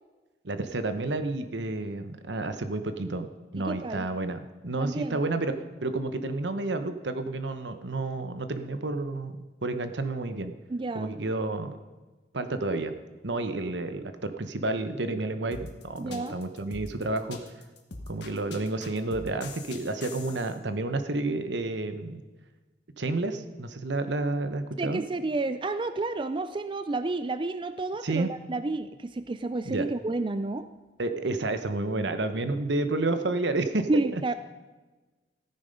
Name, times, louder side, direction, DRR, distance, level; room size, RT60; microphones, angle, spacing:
voice 1, 0.4-3.3 3.5-5.5 5.8-9.3 9.6-10.5 10.9-11.7 12.3-12.9 13.2-17.4 18.1-22.2 23.0-25.0 28.0-28.3 29.6-29.9 31.0-34.2, right 2 dB, 75° right, 9 dB, 1.0 m, -30 dB
voice 2, 3.6-4.1 4.8-5.2 10.7-11.2 16.0-16.4 24.8-30.7 33.9-34.3, right 2 dB, 25° right, 11 dB, 0.4 m, -30 dB
sound 1, 15.5-20.5, left 3 dB, 70° left, 1.5 m, -43 dB
14.5 x 9.7 x 5.3 m, 1.2 s
head